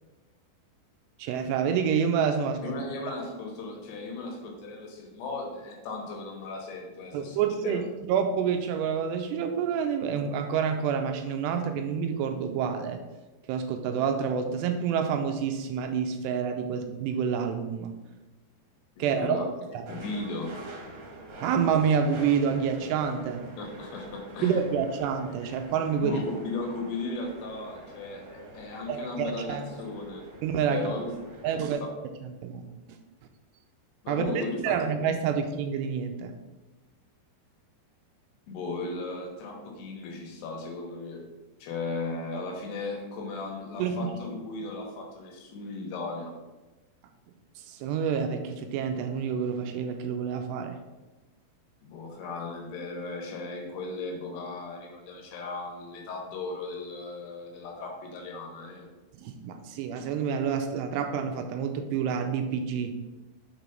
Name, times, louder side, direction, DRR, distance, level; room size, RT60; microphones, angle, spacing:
voice 1, 1.2-2.8 7.1-13.0 13.5-17.9 19.0-19.9 21.4-23.4 24.4-26.2 28.9-29.6 30.4-30.9 31.4-31.8 32.2-32.6 34.1-36.3 43.8-44.1 47.7-50.8 59.2-63.0, right 7 dB, 85° right, 6 dB, 2.6 m, -28 dB
voice 2, 2.6-7.8 19.0-19.4 19.9-20.5 23.6-24.6 26.0-30.2 30.7-31.1 31.5-31.7 34.0-34.9 38.5-41.3 41.6-46.3 51.8-58.9, left 3 dB, 75° left, 1 dB, 3.2 m, -36 dB
sound 1, 19.9-31.7, right 1 dB, 65° right, 2.7 m, -46 dB
6.6 x 5.0 x 5.1 m, 1.1 s
omnidirectional pair, 4.9 m